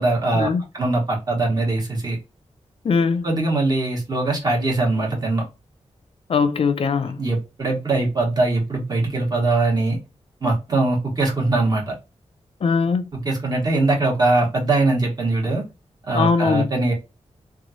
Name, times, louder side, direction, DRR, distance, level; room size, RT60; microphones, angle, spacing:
voice 1, 0.0-0.5 0.7-2.2 3.2-5.4 7.2-10.0 10.4-11.9 13.1-15.6 16.1-16.9, right 2 dB, 35° right, 1.3 m, -21 dB
voice 2, 2.8-3.3 6.3-7.2 12.6-13.1 16.1-16.7, left 5 dB, 55° left, 0.4 m, -20 dB
3.0 x 2.3 x 2.6 m
wide cardioid pair, 150°, 12 cm